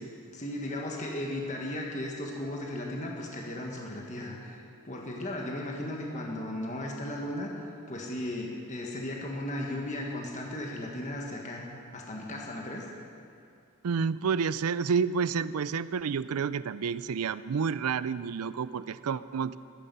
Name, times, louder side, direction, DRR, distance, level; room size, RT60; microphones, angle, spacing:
voice 1, 0.3-4.6 4.8-7.5 7.9-11.6 11.9-12.9, left 1 dB, 35° left, -1 dB, 1.6 m, -36 dB
voice 2, 13.8-19.6, right 6 dB, 90° right, 16 dB, 0.4 m, -29 dB
14.5 x 13.5 x 5.5 m, 2.4 s
head